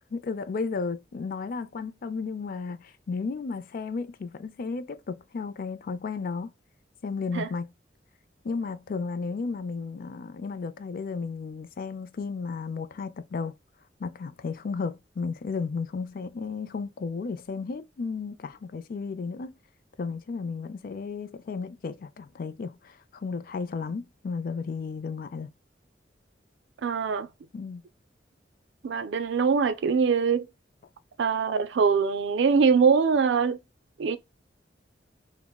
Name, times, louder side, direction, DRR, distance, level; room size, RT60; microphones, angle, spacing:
voice 1, 0.1-6.5 7.0-7.7 8.4-13.5 14.0-19.5 20.0-25.5 27.5-27.8, left 4 dB, 55° left, 0.4 m, -33 dB
voice 2, 26.8-27.3 28.8-30.5 31.2-33.6 34.0-34.2, right 5 dB, 85° right, 0.4 m, -23 dB
3.5 x 2.0 x 2.3 m
head